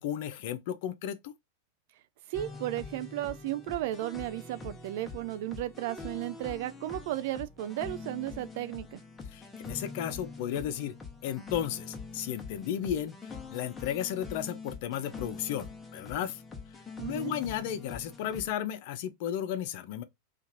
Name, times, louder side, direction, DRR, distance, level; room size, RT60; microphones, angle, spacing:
voice 1, 0.0-1.3 9.3-10.9 11.2-13.1 13.5-16.4 17.1-20.0, left 10 dB, 60° left, 0.6 m, -34 dB
sound 1, 2.3-18.5, left 4 dB, 15° left, 0.9 m, -44 dB
voice 2, 2.3-9.0 17.0-17.3, right 14 dB, 60° right, 0.3 m, -34 dB
2.9 x 2.5 x 3.8 m
hypercardioid pair, 105°, 0 cm